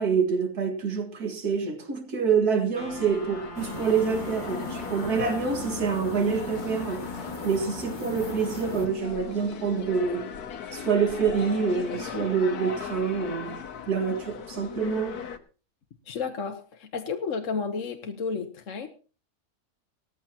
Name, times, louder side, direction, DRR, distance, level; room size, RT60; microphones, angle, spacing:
voice 1, 0.0-10.2 10.7-15.2, right 6 dB, 90° right, 2.5 m, -27 dB
Wind instrument woodwind instrument, 2.7-6.6, right 3 dB, 30° right, 2.7 m, -44 dB
sound 1, 2.8-15.4, left 7 dB, 80° left, 1.6 m, -39 dB
sound 2, 3.6-8.9, left 2 dB, 30° left, 2.0 m, -38 dB
voice 2, 16.1-18.9, left 5 dB, 55° left, 1.4 m, -32 dB
18.0 x 14.0 x 2.9 m
omnidirectional pair, 1.6 m